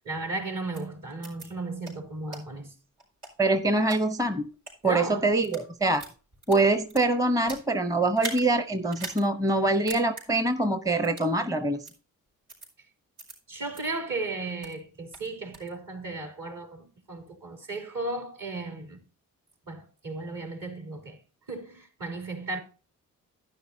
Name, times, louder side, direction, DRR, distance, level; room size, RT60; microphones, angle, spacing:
voice 1, 0.0-2.7 4.8-5.3 13.5-19.0 19.7-21.2 21.5-22.6, right 2 dB, 55° right, 3.4 m, -35 dB
sound 1, 0.7-0.8 1.2-1.5 1.8-1.9 2.3-2.4 3.0-4.0 4.5-4.7 5.3-5.7 5.9-7.7 8.1-8.4 8.9-9.2 9.5-9.6 9.9-10.2 11.0-11.3 11.8-11.9 12.5-12.7 13.2-13.3 13.7-13.8 14.3-14.8 15.1-15.7, right 2 dB, 80° right, 5.1 m, -40 dB
voice 2, 3.4-4.5 4.8-6.0 6.5-11.8, right 2 dB, 10° right, 0.8 m, -24 dB
12.0 x 10.0 x 2.7 m
hypercardioid pair, 40°, 40 cm